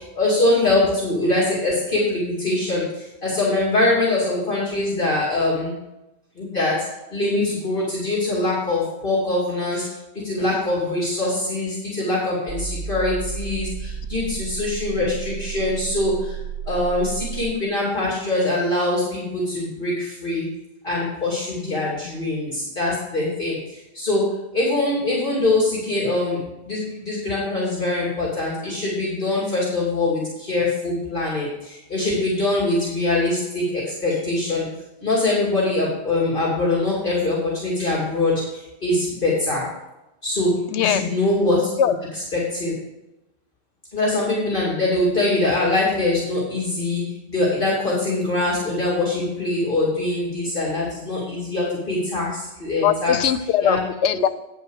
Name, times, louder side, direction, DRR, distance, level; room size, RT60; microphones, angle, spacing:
voice 1, 0.0-5.7 6.4-10.0 10.2-16.4 16.6-20.4 20.8-34.7 35.0-39.7 40.2-41.7 42.3-42.7 43.9-53.2 53.6-53.8, left 2 dB, 50° left, -6 dB, 2.9 m, -23 dB
sound 1, 12.5-17.4, right 7 dB, 75° right, 1.3 m, -32 dB
voice 2, 40.7-41.0 41.8-41.9 52.8-54.3, left 9 dB, 90° left, 11 dB, 0.9 m, -20 dB
9.8 x 5.4 x 6.4 m, 0.95 s
omnidirectional pair, 1.1 m